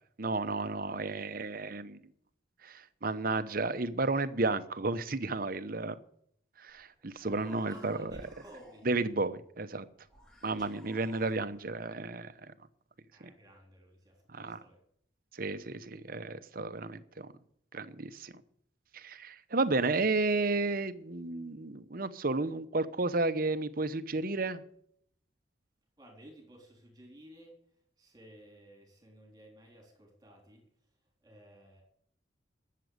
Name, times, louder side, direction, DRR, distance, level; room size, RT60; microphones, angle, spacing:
voice 1, 0.2-2.0 2.6-6.0 6.6-8.1 8.8-9.8 10.4-12.5 13.2-13.3 14.3-14.6 15.3-17.3 17.7-18.3 18.9-24.6, right 3 dB, 50° right, 0.9 m, -32 dB
Human voice, 6.7-6.8 7.1-9.2 10.1-11.7, equal, 5° left, 2.9 m, -56 dB
voice 2, 7.7-8.9 13.1-14.8 26.0-27.5 28.0-30.6 31.2-31.8, right 1 dB, 20° right, 3.6 m, -55 dB
13.0 x 7.6 x 9.4 m
head